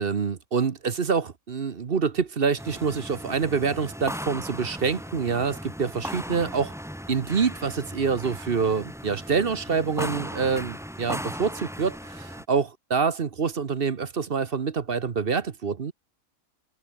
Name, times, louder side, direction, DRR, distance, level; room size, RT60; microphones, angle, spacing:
voice 1, 0.0-6.7 7.1-15.9, right 5 dB, 40° right, 1.1 m, -26 dB
sound 1, 2.6-12.4, equal, ahead, 5.3 m, -37 dB
omnidirectional pair, 1.7 m